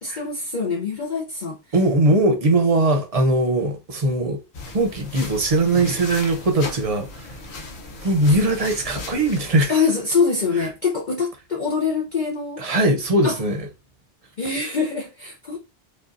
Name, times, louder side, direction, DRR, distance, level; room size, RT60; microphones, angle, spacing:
voice 1, 0.0-1.7 9.7-12.6 13.2-13.4 14.4-15.6, left 5 dB, 50° left, 0.8 m, -24 dB
voice 2, 1.7-4.4 4.7-7.3 8.0-9.7 12.6-13.7, right 2 dB, 35° right, 0.8 m, -20 dB
sound 1, 4.5-9.6, left 2 dB, 75° left, 1.2 m, -36 dB
5.2 x 2.4 x 2.6 m
omnidirectional pair, 1.1 m